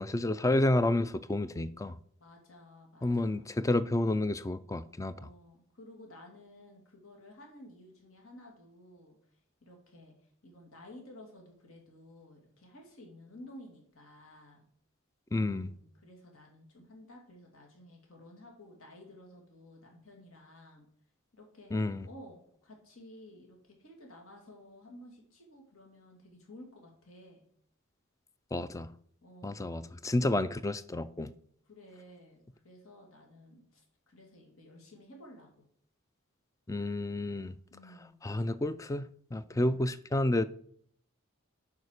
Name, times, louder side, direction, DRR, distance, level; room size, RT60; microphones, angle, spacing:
voice 1, 0.0-1.9 3.0-5.1 15.3-15.7 21.7-22.1 28.5-28.9 29.4-31.3 36.7-37.5 38.2-39.1 39.3-40.4, left 1 dB, 15° left, 0.3 m, -30 dB
voice 2, 2.2-3.5 5.1-10.1 10.4-14.7 15.4-20.9 21.3-21.7 22.0-27.4 29.2-29.7 31.7-35.6 37.7-38.2, left 1 dB, 75° left, 2.5 m, -53 dB
9.6 x 4.9 x 6.5 m
head